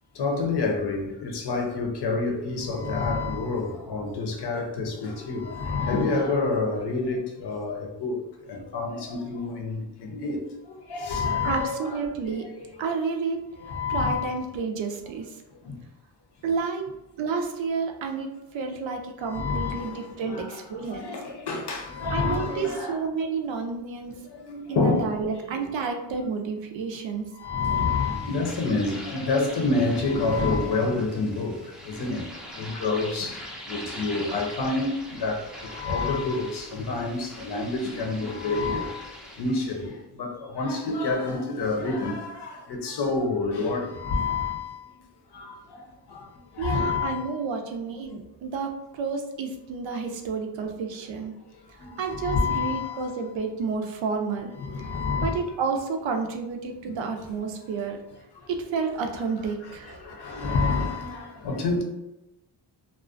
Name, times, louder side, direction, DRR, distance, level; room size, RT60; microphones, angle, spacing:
voice 1, 0.2-8.2 8.5-10.4 10.9-12.0 12.2-12.8 13.6-14.3 15.6-15.7 19.2-23.0 24.4-25.7 27.4-31.6 31.9-32.2 32.6-33.4 33.7-39.0 39.4-39.9 40.2-44.8 45.3-45.6 46.1-46.2 46.6-47.2 51.8-53.1 54.6-55.4 59.4-61.8, left 3 dB, 60° left, 0.6 m, -28 dB
voice 2, 11.4-12.5 12.8-13.4 13.9-15.4 16.4-16.8 17.2-21.0 22.1-24.2 24.7-27.3 46.6-51.3 52.0-54.5 55.2-58.0 58.5-60.0, right 5 dB, 80° right, 0.5 m, -30 dB
sound 1, 27.6-39.9, equal, ahead, 0.4 m, -42 dB
2.4 x 2.1 x 2.4 m
cardioid pair, 95°, 45 cm